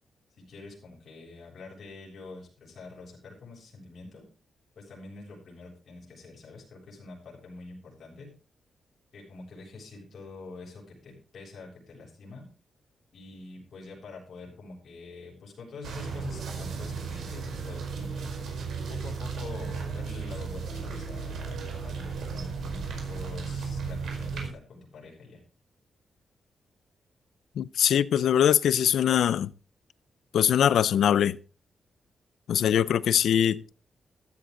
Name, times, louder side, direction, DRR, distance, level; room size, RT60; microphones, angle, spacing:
voice 1, 0.4-4.3 4.8-8.3 9.1-12.5 13.1-18.3 18.9-25.4, left 3 dB, 50° left, 7.3 m, -46 dB
sound 1, 15.8-24.5, right 5 dB, 75° right, 5.1 m, -35 dB
voice 2, 27.6-29.5 30.3-31.4 32.5-33.6, left 9 dB, 85° left, 0.6 m, -22 dB
15.5 x 13.0 x 3.9 m
wide cardioid pair, 180°, 0 cm